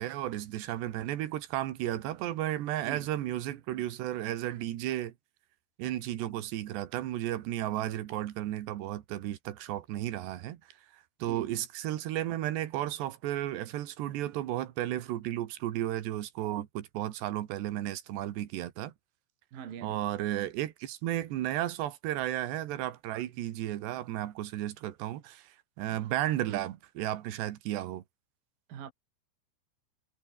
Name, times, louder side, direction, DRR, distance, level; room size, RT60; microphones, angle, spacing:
voice 1, 0.0-5.1 5.8-10.6 11.2-18.9 19.8-28.0, right 13 dB, 75° right, 3.6 m, -33 dB
voice 2, 11.2-11.5 19.5-20.1 28.7-28.9, right 8 dB, 55° right, 3.9 m, -43 dB
omnidirectional pair, 5.2 m